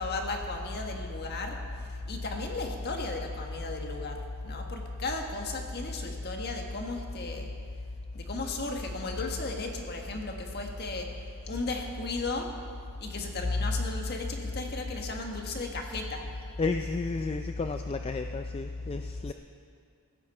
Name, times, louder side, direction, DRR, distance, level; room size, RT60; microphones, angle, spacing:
voice 1, 0.0-7.5 8.1-11.1 11.5-12.5 13.0-16.2, left 2 dB, 45° left, 2 dB, 1.6 m, -35 dB
voice 2, 16.6-19.3, left 3 dB, 25° left, 7 dB, 0.3 m, -31 dB
15.5 x 14.5 x 4.4 m, 2.1 s
head